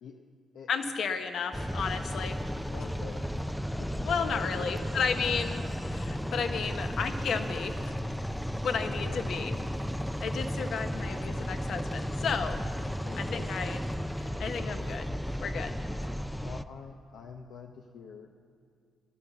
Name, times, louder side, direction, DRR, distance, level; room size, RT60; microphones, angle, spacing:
voice 1, 0.7-2.4 4.0-7.9 8.6-9.5 10.2-13.8 14.2-15.1 15.4-15.7, left 6 dB, 70° left, 7 dB, 1.1 m, -33 dB
sound 1, 1.5-16.6, equal, 5° left, 0.5 m, -34 dB
voice 2, 2.7-3.3 3.8-5.1 6.5-6.7 9.0-9.3 13.0-13.5 16.4-18.3, left 6 dB, 85° left, 2 dB, 0.8 m, -46 dB
15.0 x 11.5 x 7.1 m, 2.2 s
cardioid pair, 75°, 0 cm